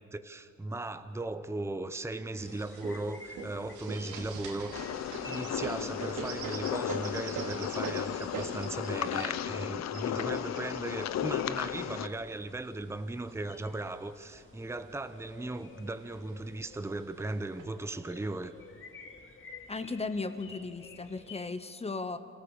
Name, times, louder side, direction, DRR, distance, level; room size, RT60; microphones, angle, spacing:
voice 1, 0.1-4.8 5.3-18.5, right 2 dB, 10° right, 11 dB, 0.9 m, -37 dB
sound 1, 2.3-21.5, left 4 dB, 40° left, 2.5 m, -54 dB
sound 2, 2.4-12.6 13.3-14.2 14.6-14.7 15.0-15.7 16.5-16.6 17.2-17.6, right 4 dB, 80° right, 2.6 m, -42 dB
sound 3, 4.7-12.1, left 10 dB, 60° left, 0.8 m, -34 dB
voice 2, 19.7-22.2, left 3 dB, 20° left, 11 dB, 1.0 m, -36 dB
27.5 x 14.0 x 7.1 m, 2.5 s
cardioid pair, 90°, 30 cm